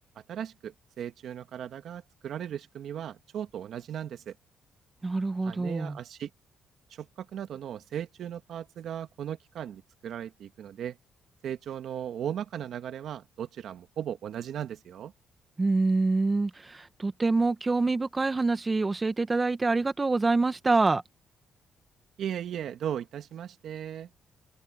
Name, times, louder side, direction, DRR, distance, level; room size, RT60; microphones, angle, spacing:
voice 1, 0.1-4.3 5.4-6.3 6.9-11.0 11.4-15.1 22.2-24.1, right 9 dB, 70° right, 1.8 m, -37 dB
voice 2, 5.0-6.0 15.6-21.0, right 3 dB, 25° right, 1.3 m, -26 dB
cardioid pair, 90°, 0 cm